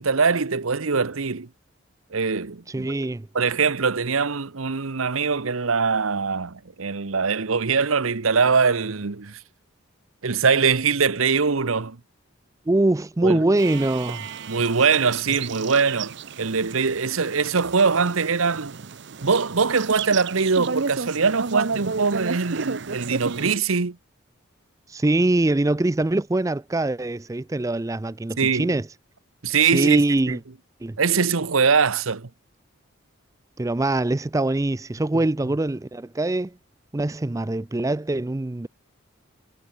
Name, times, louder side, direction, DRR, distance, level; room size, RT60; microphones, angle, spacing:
voice 1, 0.0-1.5 2.1-2.9 3.3-9.4 10.2-12.0 13.2-13.4 14.5-18.7 19.2-24.0 28.4-28.7 29.4-30.4 31.0-32.3, right 5 dB, 80° right, 1.0 m, -22 dB
voice 2, 2.7-3.3 12.7-14.3 24.9-28.9 29.7-30.4 30.8-31.0 33.6-36.5 36.9-38.7, right 2 dB, 15° right, 0.4 m, -23 dB
sound 1, 13.6-23.6, right 5 dB, 55° right, 0.8 m, -33 dB
head